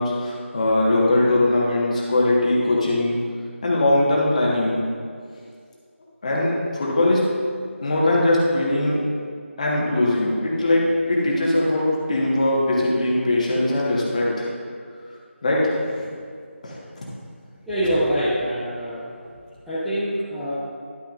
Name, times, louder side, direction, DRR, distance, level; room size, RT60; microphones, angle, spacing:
voice 1, 0.0-3.2 3.6-4.8 6.2-7.2 7.8-9.0 9.6-10.8 11.1-14.5 15.4-16.1 16.6-16.8, left 1 dB, 30° left, -4 dB, 1.6 m, -21 dB
voice 2, 17.7-19.1 19.6-20.6, equal, ahead, -17 dB, 0.6 m, -24 dB
11.5 x 9.3 x 2.6 m, 2.2 s
figure-of-eight pair, 165°, 7 cm